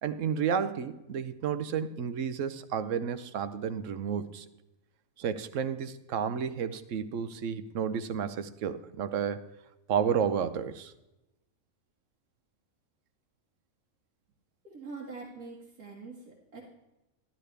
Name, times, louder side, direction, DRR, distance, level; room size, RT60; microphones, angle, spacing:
voice 1, 0.0-4.4 5.2-9.5 9.9-10.9, right 7 dB, 65° right, 12 dB, 1.0 m, -31 dB
voice 2, 14.6-16.6, right 4 dB, 85° right, -5 dB, 2.3 m, -44 dB
12.5 x 12.0 x 3.3 m, 0.94 s
omnidirectional pair, 1.5 m